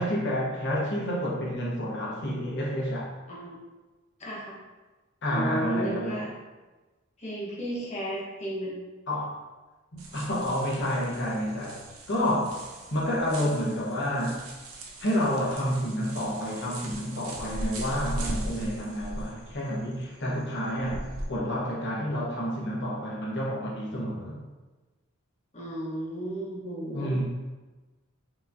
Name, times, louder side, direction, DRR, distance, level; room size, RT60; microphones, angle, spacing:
voice 1, 0.0-3.1 5.2-6.3 9.1-9.4 9.9-11.8 12.1-12.6 12.9-14.5 15.0-24.4 26.9-27.2, equal, 55° left, -4 dB, 1.0 m, -29 dB
voice 2, 4.2-4.5 5.3-6.3 7.2-8.7 25.5-27.2, right 1 dB, 30° left, -6 dB, 1.1 m, -34 dB
sound 1, 10.0-21.3, right 1 dB, 75° right, 0.6 m, -39 dB
4.8 x 3.0 x 2.6 m, 1.2 s
head